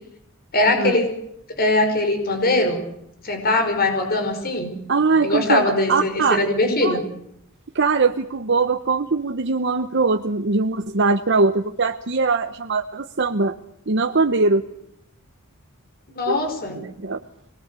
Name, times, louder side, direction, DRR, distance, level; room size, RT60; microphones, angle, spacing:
voice 1, 0.5-1.1 1.6-2.8 3.2-4.7 5.2-7.0 16.2-16.8, left 2 dB, 45° left, 5 dB, 5.3 m, -21 dB
voice 2, 4.9-6.4 6.8-7.0 7.7-13.6 13.9-14.6 16.3-16.4 16.8-17.2, right 3 dB, 55° right, 6 dB, 1.0 m, -21 dB
24.5 x 20.0 x 8.3 m, 0.78 s
head